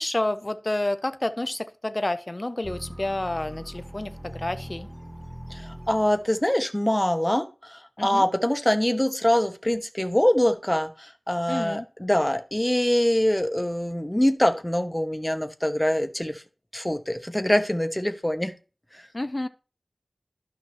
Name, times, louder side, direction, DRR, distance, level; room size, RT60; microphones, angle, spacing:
voice 1, 0.0-4.9 8.0-8.3 11.5-11.9 19.1-19.5, left 1 dB, 40° left, 11 dB, 0.6 m, -29 dB
sound 1, 2.6-6.4, equal, 5° right, 0.6 m, -41 dB
voice 2, 5.5-16.4 16.7-18.5 18.9-19.0, left 1 dB, 15° left, 9 dB, 0.9 m, -24 dB
12.5 x 5.7 x 3.1 m, 0.34 s
wide cardioid pair, 45°, 0 cm